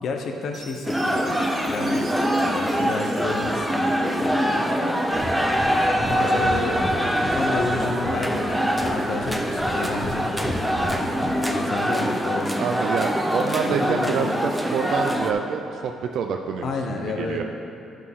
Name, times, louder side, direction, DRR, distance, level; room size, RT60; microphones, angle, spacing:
voice 1, 0.0-1.3 1.7-2.1 2.5-4.7 5.0-5.2 6.0-6.8 7.3-11.0 11.5-12.5 13.7-14.4 16.6-17.4, left 3 dB, 55° left, 3 dB, 0.8 m, -30 dB
Chime, 0.5-4.7, right 3 dB, 30° right, 0.9 m, -45 dB
sound 1, 0.8-15.3, equal, ahead, 0.5 m, -24 dB
Breathing, 5.1-5.3 5.5-5.7 6.0-6.1 6.4-7.7 8.0-8.9 9.2-10.1 10.4-11.3, equal, 20° left, 2.0 m, -33 dB
voice 2, 12.6-17.4, right 6 dB, 65° right, 4 dB, 0.4 m, -27 dB
11.0 x 6.4 x 3.6 m, 2.9 s
cardioid pair, 135°, 0 cm